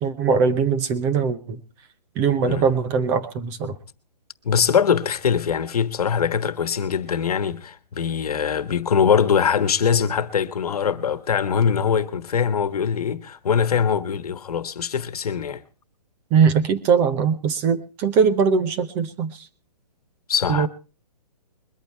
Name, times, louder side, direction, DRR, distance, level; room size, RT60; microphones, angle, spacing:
voice 1, 0.0-1.6 2.2-3.7 16.3-19.4 20.5-20.7, right 6 dB, 10° right, 0.6 m, -21 dB
voice 2, 4.4-15.6 20.3-20.7, left 7 dB, 65° left, 1.3 m, -22 dB
22.0 x 8.8 x 4.5 m
hypercardioid pair, 170°, 21 cm